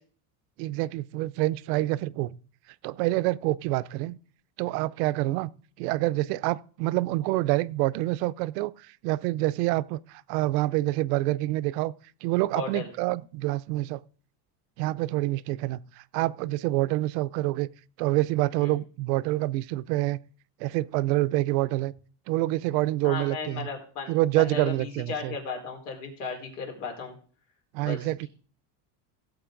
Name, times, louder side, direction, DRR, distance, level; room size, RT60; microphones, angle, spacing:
voice 1, 0.6-2.4 2.8-4.2 4.6-5.5 5.8-11.9 12.2-14.0 14.8-17.7 18.0-20.2 20.6-21.9 22.3-23.7 24.1-25.4 27.7-28.3, right 18 dB, 75° right, 0.7 m, -27 dB
voice 2, 12.5-12.9 18.6-18.7 23.0-27.1 27.8-28.3, left 5 dB, 75° left, 4.5 m, -36 dB
16.5 x 7.8 x 3.8 m
cardioid pair, 155°, 48 cm